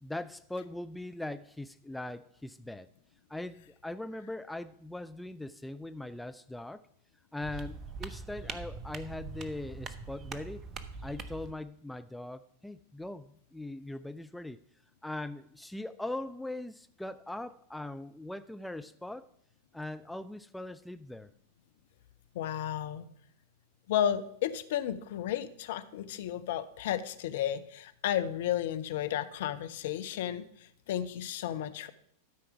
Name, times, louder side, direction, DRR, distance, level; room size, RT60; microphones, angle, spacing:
voice 1, 0.0-2.9 3.3-6.8 7.3-10.6 11.0-14.6 15.0-19.3 19.7-21.3, left 2 dB, 5° left, 12 dB, 0.3 m, -40 dB
sound 1, 7.4-11.5, right 4 dB, 30° right, 0.8 m, -42 dB
voice 2, 22.3-23.0 23.9-30.4 30.9-31.9, left 10 dB, 55° left, 11 dB, 0.6 m, -33 dB
12.5 x 4.6 x 6.0 m, 0.68 s
figure-of-eight pair, 90°, 0 cm